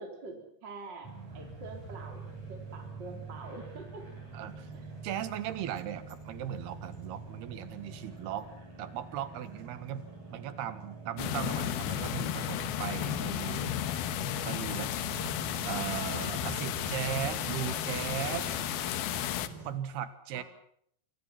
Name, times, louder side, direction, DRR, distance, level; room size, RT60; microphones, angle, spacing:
voice 1, 0.0-2.2 2.5-4.0 4.7-4.9 13.2-13.8 20.3-20.4, right 3 dB, 30° right, 3 dB, 4.0 m, -46 dB
sound 1, 1.0-19.8, right 4 dB, 45° right, 9.3 m, -46 dB
voice 2, 4.3-4.7 5.0-8.5 8.8-10.1 10.3-13.8 14.4-14.9 15.6-18.5 19.6-20.4, right 10 dB, 85° right, 13 dB, 3.6 m, -37 dB
sound 2, 11.2-19.5, left 11 dB, 80° left, 3.1 m, -33 dB
27.5 x 24.0 x 5.9 m, 0.67 s
omnidirectional pair, 4.5 m